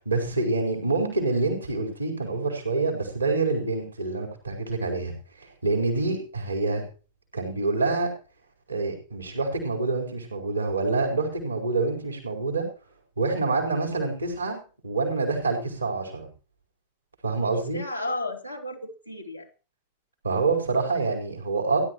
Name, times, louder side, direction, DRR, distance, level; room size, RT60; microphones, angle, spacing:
voice 1, 0.0-5.1 5.4-6.8 7.3-8.1 8.7-12.7 13.2-16.3 17.2-17.8 20.2-21.9, right 3 dB, 80° right, 3 dB, 4.4 m, -26 dB
voice 2, 17.3-19.5, left 1 dB, 90° left, 0 dB, 2.5 m, -34 dB
18.0 x 11.5 x 3.1 m, 0.36 s
figure-of-eight pair, 90°, 0 cm